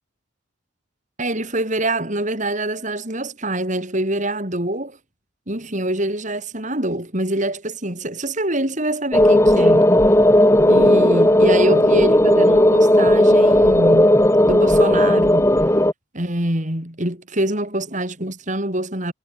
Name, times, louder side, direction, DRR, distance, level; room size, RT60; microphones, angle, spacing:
voice 1, 1.2-5.0 5.5-10.0 10.6-14.2 14.4-15.6 16.1-19.1, right 1 dB, 40° right, 5.7 m, -24 dB
sound 1, 9.1-15.9, left 1 dB, 15° left, 2.4 m, -14 dB
head